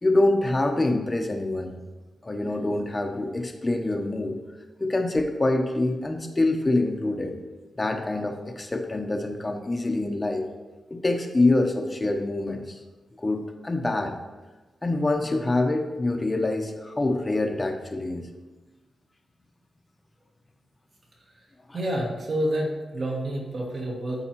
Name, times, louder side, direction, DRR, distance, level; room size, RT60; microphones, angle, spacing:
voice 1, 0.0-1.7 2.2-4.4 4.8-7.4 7.8-10.5 10.9-12.8 13.2-14.1 14.8-18.3, left 2 dB, 25° left, 4 dB, 0.9 m, -25 dB
voice 2, 21.7-24.2, right 1 dB, 50° right, -1 dB, 2.0 m, -28 dB
13.0 x 4.8 x 3.0 m, 1.2 s
cardioid pair, 90°, 0 cm